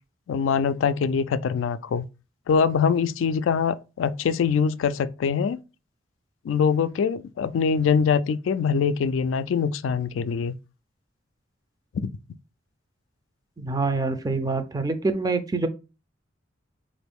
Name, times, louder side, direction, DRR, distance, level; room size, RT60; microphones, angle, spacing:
voice 1, 0.3-2.0 2.5-5.6 6.4-10.5 12.0-12.1, left 6 dB, 80° left, 0.3 m, -23 dB
voice 2, 13.6-15.7, right 3 dB, 20° right, 0.4 m, -25 dB
3.9 x 2.5 x 3.5 m
head